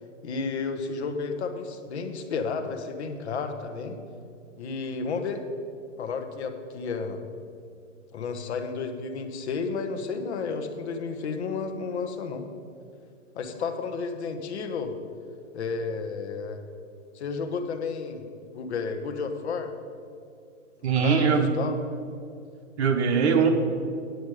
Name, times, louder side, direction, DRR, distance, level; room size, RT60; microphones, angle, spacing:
voice 1, 0.2-4.0 4.6-5.4 6.0-7.2 8.1-12.4 13.4-14.9 15.5-16.6 17.1-18.2 18.5-19.7 20.9-21.3 21.5-21.8, left 5 dB, 55° left, 7 dB, 1.1 m, -32 dB
voice 2, 20.8-21.5 22.8-23.5, right 6 dB, 55° right, 4 dB, 1.3 m, -21 dB
9.3 x 8.1 x 4.9 m, 2.4 s
hypercardioid pair, 155°, 39 cm